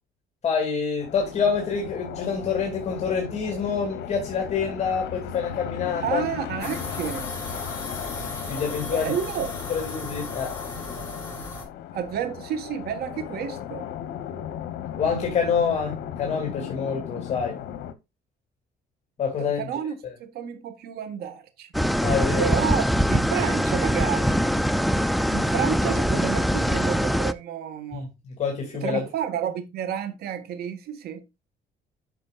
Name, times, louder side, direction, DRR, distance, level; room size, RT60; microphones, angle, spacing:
voice 1, 0.4-6.3 8.5-9.1 9.7-10.5 15.0-17.6 19.2-19.6 22.0-22.5 27.9-28.1 28.4-29.0, left 6 dB, 40° left, 2.7 m, -26 dB
sound 1, 1.0-17.9, left 10 dB, 80° left, 0.9 m, -36 dB
voice 2, 6.0-7.3 8.9-9.5 11.9-13.9 19.4-21.7 22.4-24.4 25.3-28.1 28.8-31.2, right 9 dB, 70° right, 1.6 m, -30 dB
sound 2, 6.6-11.6, left 2 dB, 15° left, 5.2 m, -36 dB
sound 3, 21.7-27.3, equal, ahead, 0.4 m, -23 dB
10.5 x 6.4 x 2.4 m
cardioid pair, 110°, 17 cm